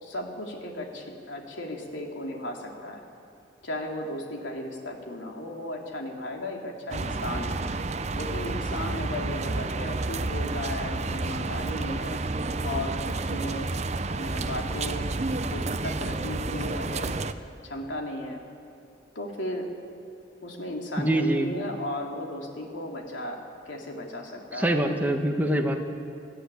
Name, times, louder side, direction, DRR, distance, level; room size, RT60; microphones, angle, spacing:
voice 1, 0.0-3.0 3.6-7.7 8.2-12.2 12.6-13.7 14.1-15.1 15.4-17.2 17.5-18.4 19.1-19.7 20.4-25.2, left 1 dB, 90° left, 1 dB, 3.2 m, -35 dB
sound 1, 6.9-17.3, right 3 dB, 35° right, 0.7 m, -30 dB
voice 2, 21.0-21.5 24.6-25.8, right 1 dB, 10° right, 3 dB, 1.4 m, -24 dB
21.5 x 14.5 x 9.8 m, 2.6 s
head